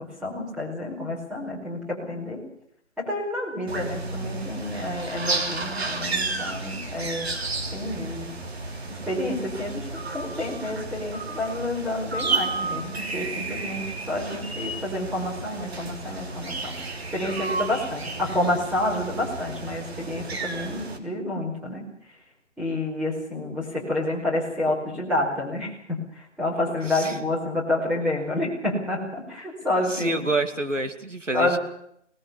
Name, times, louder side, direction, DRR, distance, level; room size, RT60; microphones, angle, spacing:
voice 1, 0.0-2.5 3.0-7.3 7.7-8.3 8.9-21.9 22.6-30.2 31.3-31.6, left 1 dB, 5° right, -4 dB, 4.6 m, -29 dB
sound 1, 3.7-21.0, right 3 dB, 60° right, 3.4 m, -32 dB
voice 2, 26.8-27.2 29.9-31.6, right 2 dB, 90° right, 7 dB, 2.5 m, -27 dB
22.5 x 19.5 x 7.0 m, 0.70 s
figure-of-eight pair, 140°, 36 cm